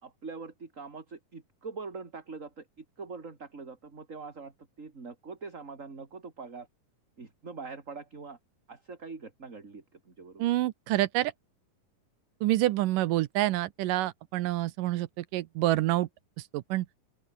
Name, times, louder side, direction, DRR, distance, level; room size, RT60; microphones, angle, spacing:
voice 1, 0.0-6.7 7.2-8.4 8.7-10.5, right 4 dB, 25° right, 2.9 m, -43 dB
voice 2, 10.4-11.3 12.4-16.1 16.5-16.9, right 16 dB, 75° right, 2.3 m, -27 dB
open air
omnidirectional pair, 4.2 m